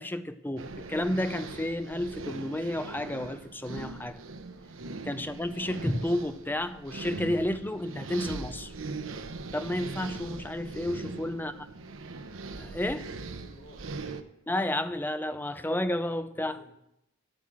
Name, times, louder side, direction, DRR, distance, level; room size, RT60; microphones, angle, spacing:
voice 1, 0.0-4.2 5.0-8.7 9.5-11.5 12.5-13.1 14.5-16.6, left 1 dB, 10° left, 0.5 m, -31 dB
sound 1, 0.6-14.2, right 3 dB, 90° right, 0.8 m, -40 dB
voice 2, 11.0-11.6 13.2-14.2 16.3-16.7, left 1 dB, 75° left, 4.6 m, -55 dB
9.5 x 7.8 x 7.5 m
head